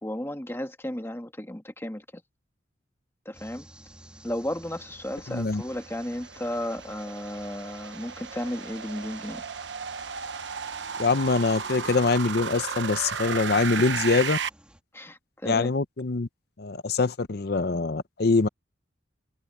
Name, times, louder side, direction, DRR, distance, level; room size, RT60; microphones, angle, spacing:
voice 1, 0.0-2.2 3.3-3.7 4.2-9.4 14.9-15.7, left 1 dB, 15° left, 1.9 m, -34 dB
sound 1, 3.3-14.8, right 1 dB, 5° right, 2.7 m, -52 dB
sound 2, 4.9-14.5, right 6 dB, 70° right, 0.9 m, -35 dB
voice 2, 5.3-5.6 11.0-14.4 15.4-16.3 16.6-18.5, left 3 dB, 55° left, 0.7 m, -24 dB
head